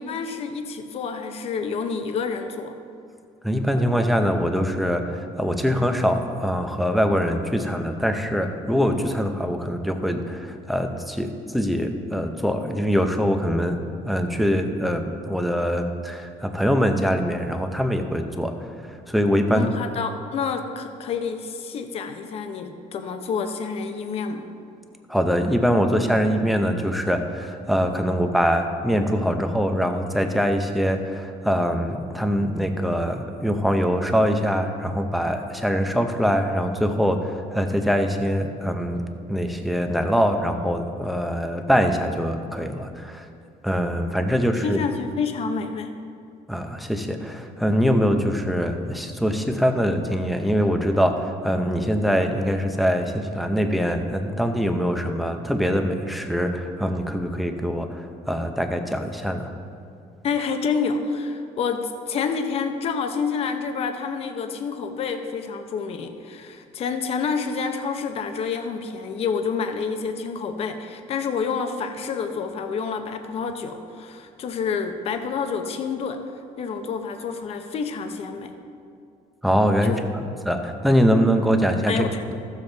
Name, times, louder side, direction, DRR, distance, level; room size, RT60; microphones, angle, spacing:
voice 1, 0.0-2.7 19.5-24.4 44.6-45.9 60.2-76.2 76.6-78.6 79.8-80.0 81.9-82.3, left 5 dB, 45° left, 7 dB, 0.7 m, -28 dB
voice 2, 3.4-13.8 14.0-18.5 18.8-19.7 25.1-43.3 43.6-44.8 46.5-59.5 79.4-82.1, equal, ahead, 5 dB, 0.6 m, -23 dB
14.0 x 7.3 x 3.9 m, 2.4 s
cardioid pair, 165°, 14 cm